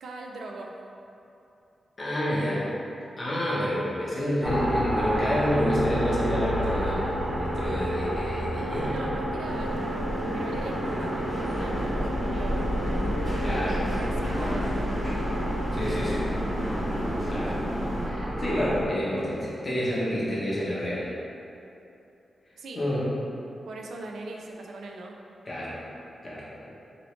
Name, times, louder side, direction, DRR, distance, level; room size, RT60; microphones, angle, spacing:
voice 1, 0.0-0.7 8.9-10.1 10.3-12.7 13.9-15.1 22.6-22.8 23.7-25.2, right 2 dB, 85° right, 0 dB, 0.3 m, -40 dB
voice 2, 2.0-2.7 3.2-9.0 13.4-13.9 15.7-16.3 17.3-17.6 18.0-21.1 22.8-23.1 25.4-25.7 26.2-26.5, equal, 30° left, -7 dB, 0.7 m, -28 dB
sound 1, 4.4-18.9, equal, 55° right, 0.7 m, -30 dB
Organ, 5.8-16.5, right 1 dB, 55° left, 0.8 m, -39 dB
sound 2, 9.4-18.1, equal, 15° right, 1.1 m, -33 dB
3.0 x 2.7 x 3.1 m, 2.8 s
wide cardioid pair, 180°, 0 cm